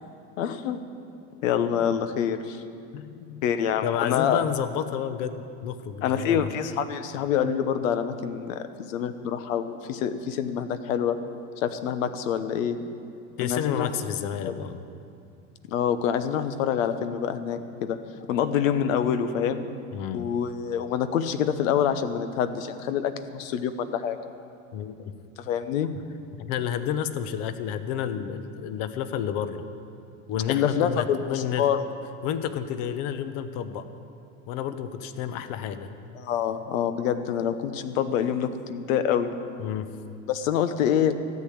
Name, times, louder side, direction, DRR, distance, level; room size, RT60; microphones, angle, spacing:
voice 1, 0.4-0.8 1.4-2.6 3.4-4.4 6.0-11.2 11.6-12.8 13.4-13.9 14.4-14.5 15.7-18.0 18.3-19.6 20.1-24.2 25.4-25.9 30.5-31.8 36.1-39.3 40.3-41.1, left 8 dB, 85° left, 10 dB, 1.0 m, -26 dB
voice 2, 2.9-3.4 3.8-6.5 13.4-14.8 19.9-20.3 24.7-25.1 26.4-29.6 30.3-31.7 32.2-33.9 34.5-35.9 39.6-39.9, left 9 dB, 65° left, 11 dB, 1.1 m, -30 dB
13.5 x 8.6 x 8.7 m, 2.5 s
supercardioid pair, 100°, 39 cm